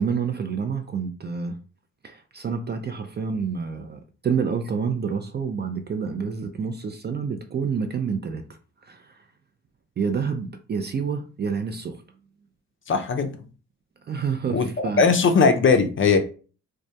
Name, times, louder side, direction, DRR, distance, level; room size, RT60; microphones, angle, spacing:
voice 1, 0.0-1.6 2.0-9.3 10.0-12.0 14.0-15.0, right 6 dB, 30° right, 0.4 m, -28 dB
voice 2, 12.9-13.3 14.5-14.7 15.0-16.2, left 5 dB, 35° left, 0.5 m, -18 dB
2.2 x 2.1 x 2.7 m
hypercardioid pair, 45°, 36 cm